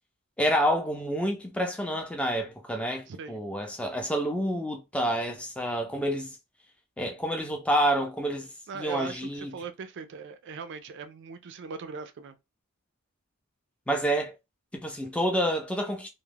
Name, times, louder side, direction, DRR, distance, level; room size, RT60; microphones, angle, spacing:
voice 1, 0.4-6.3 7.0-8.5 8.7-9.5 13.9-14.3 14.7-16.1, equal, 5° left, 0.4 m, -28 dB
voice 2, 3.1-3.4 8.7-12.3, right 6 dB, 55° right, 0.4 m, -39 dB
2.2 x 2.0 x 3.3 m
head